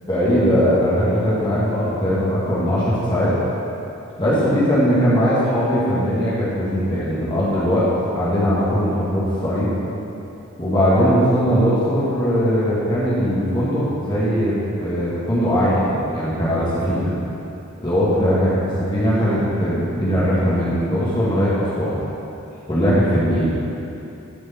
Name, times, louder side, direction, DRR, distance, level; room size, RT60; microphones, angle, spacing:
voice 1, 0.1-3.3 4.2-9.7 10.6-17.2 17.8-22.0 22.7-23.6, equal, 20° left, -9 dB, 1.6 m, -20 dB
12.0 x 4.9 x 4.2 m, 2.9 s
head